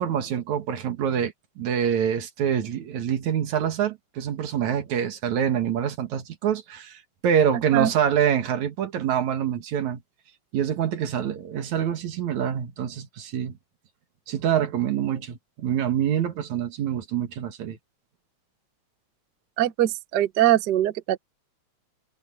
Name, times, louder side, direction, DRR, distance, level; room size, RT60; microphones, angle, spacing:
voice 1, 0.0-10.0 10.5-13.6 14.3-17.8, right 9 dB, 75° right, 3.0 m, -26 dB
voice 2, 19.6-21.2, right 13 dB, 90° right, 0.9 m, -22 dB
omnidirectional pair, 3.4 m